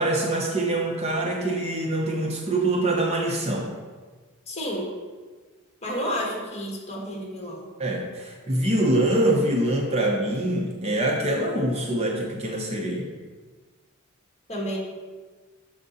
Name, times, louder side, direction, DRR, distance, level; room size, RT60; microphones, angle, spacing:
voice 1, 0.0-3.7 7.8-13.1, right 1 dB, 30° right, 0 dB, 0.7 m, -24 dB
voice 2, 4.5-4.9 5.8-7.7 14.5-14.8, equal, 30° left, -2 dB, 1.6 m, -30 dB
6.6 x 5.1 x 4.0 m, 1.4 s
head